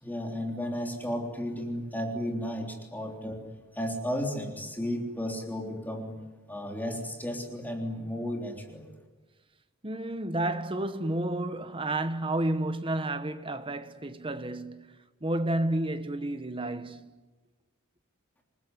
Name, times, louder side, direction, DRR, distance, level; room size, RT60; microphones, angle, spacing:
voice 1, 0.0-3.4 3.7-6.2 6.5-8.9, equal, 10° left, 3.5 m, -33 dB
voice 2, 9.8-17.2, right 1 dB, 25° right, 1.3 m, -31 dB
28.5 x 19.5 x 9.8 m
head